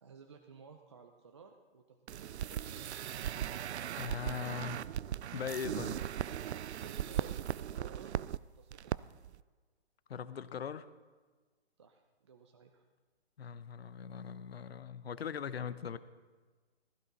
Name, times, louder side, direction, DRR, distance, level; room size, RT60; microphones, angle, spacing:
voice 1, 0.0-2.6 6.8-9.2 11.8-12.8, right 6 dB, 25° right, 4 dB, 0.6 m, -56 dB
sound 1, 2.1-8.4 8.7-9.0 9.2-9.4, right 10 dB, 80° right, 0.5 m, -38 dB
voice 2, 4.0-4.9 5.3-6.0 10.1-10.9 13.4-16.0, left 7 dB, 65° left, 14 dB, 0.9 m, -40 dB
16.0 x 14.5 x 4.1 m, 1.4 s
hypercardioid pair, 165°, 33 cm